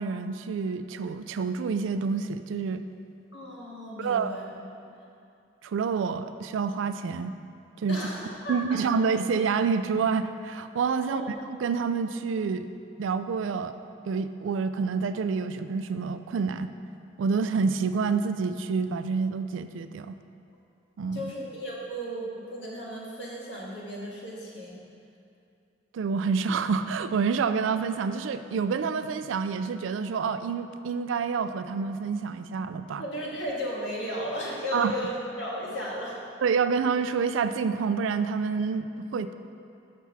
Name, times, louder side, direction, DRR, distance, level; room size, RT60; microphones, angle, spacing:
voice 1, 0.0-2.8 4.0-4.4 5.6-7.4 7.8-8.0 8.5-11.2 11.6-12.7 13.0-13.8 14.1-16.7 17.2-20.2 21.0-21.3 25.9-33.0 34.7-34.9 36.4-39.3, right 5 dB, 90° right, 11 dB, 0.3 m, -28 dB
voice 2, 3.3-4.5 7.9-8.8 11.0-11.2 21.1-24.8 33.0-36.2, equal, 75° left, -4 dB, 1.6 m, -35 dB
6.0 x 5.6 x 6.0 m, 2.6 s
head